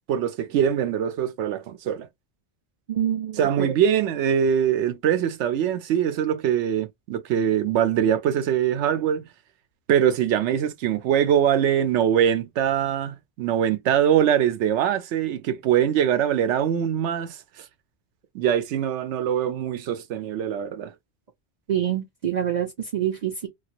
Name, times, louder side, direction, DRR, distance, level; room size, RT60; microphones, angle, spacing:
voice 1, 0.0-2.1 3.4-9.2 9.9-17.4 18.3-20.9, right 9 dB, 90° right, 0.9 m, -23 dB
voice 2, 2.9-3.7 21.7-23.5, right 10 dB, 50° right, 0.5 m, -26 dB
2.9 x 2.2 x 2.9 m
omnidirectional pair, 1.1 m